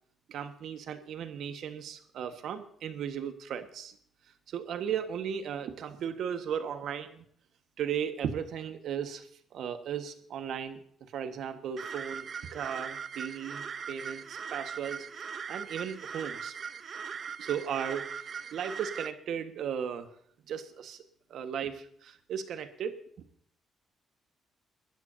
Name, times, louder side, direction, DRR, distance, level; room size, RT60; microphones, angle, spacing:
voice 1, 0.3-3.9 4.5-7.2 7.8-9.3 9.5-10.8 11.1-15.1 15.5-16.5 17.4-20.1 20.5-21.0 21.3-23.0, right 8 dB, 75° right, 8 dB, 1.5 m, -36 dB
sound 1, 11.8-19.1, right 6 dB, 50° right, 0.7 m, -40 dB
22.5 x 12.5 x 2.8 m, 0.62 s
cardioid pair, 90°, 0 cm